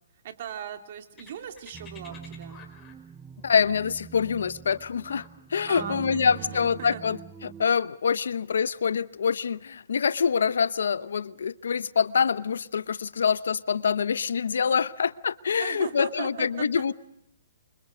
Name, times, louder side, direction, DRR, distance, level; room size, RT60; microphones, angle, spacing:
voice 1, 0.2-2.6 5.7-7.0 15.6-16.8, right 9 dB, 50° right, 6 dB, 2.9 m, -38 dB
sound 1, 1.2-6.7, left 6 dB, 20° left, 4.5 m, -53 dB
sound 2, 1.7-7.7, right 8 dB, 10° right, 0.8 m, -44 dB
voice 2, 3.4-5.2 5.5-16.9, left 6 dB, 80° left, 18 dB, 0.8 m, -25 dB
28.5 x 25.0 x 5.2 m, 0.76 s
hypercardioid pair, 150°, 0 cm